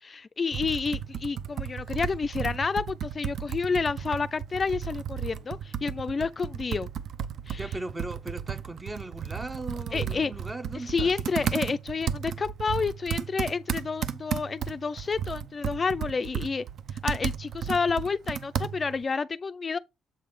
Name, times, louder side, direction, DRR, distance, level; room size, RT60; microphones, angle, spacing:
voice 1, 0.0-6.9 7.5-7.6 9.9-10.3 10.7-16.7 17.0-19.8, left 5 dB, 35° left, 0.3 m, -29 dB
Computer keyboard, 0.5-19.0, right 8 dB, 65° right, 0.6 m, -34 dB
voice 2, 7.5-11.1, right 2 dB, 20° right, 0.7 m, -38 dB
7.6 x 3.1 x 5.4 m
cardioid pair, 90°, 0 cm